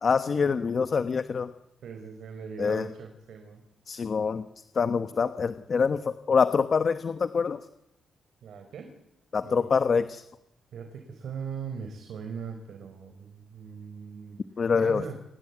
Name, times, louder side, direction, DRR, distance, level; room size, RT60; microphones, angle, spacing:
voice 1, 0.0-1.5 2.6-2.9 3.9-4.5 4.7-7.6 9.3-10.2 14.6-15.0, left 5 dB, 45° left, 11 dB, 1.2 m, -25 dB
voice 2, 1.8-3.6 5.0-5.1 8.4-8.9 9.4-9.7 10.7-14.4 14.8-15.2, right 6 dB, 75° right, 5 dB, 4.5 m, -40 dB
28.0 x 19.0 x 9.4 m, 0.86 s
cardioid pair, 120°, 0 cm